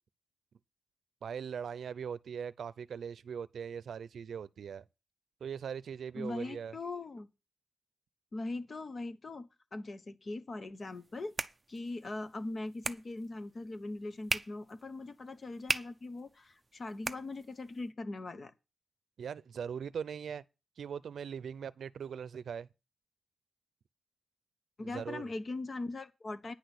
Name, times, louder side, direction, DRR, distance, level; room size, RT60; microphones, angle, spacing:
voice 1, 1.2-4.9 5.4-6.7 19.2-20.4 20.8-22.7 24.8-25.3, right 7 dB, 85° right, 0.5 m, -40 dB
voice 2, 6.1-7.3 8.3-11.3 11.7-18.5 24.8-26.5, left 2 dB, 40° left, 1.0 m, -40 dB
sound 1, 10.8-17.9, right 3 dB, 25° right, 0.5 m, -41 dB
10.0 x 6.2 x 8.2 m
wide cardioid pair, 155°, 0 cm